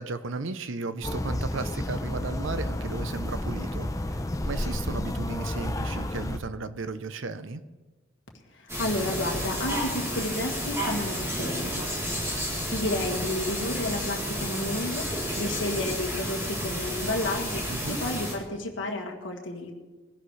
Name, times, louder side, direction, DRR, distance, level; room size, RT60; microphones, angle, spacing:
voice 1, 0.0-4.2 4.5-7.6 17.7-18.0, right 3 dB, 70° right, 12 dB, 0.7 m, -35 dB
sound 1, 1.0-6.4, left 1 dB, 15° left, 0.6 m, -31 dB
voice 2, 8.5-11.9 12.7-19.7, left 1 dB, 65° left, 2 dB, 1.8 m, -31 dB
sound 2, 8.7-18.3, equal, 15° right, 3.4 m, -31 dB
21.5 x 11.0 x 3.3 m, 1.2 s
head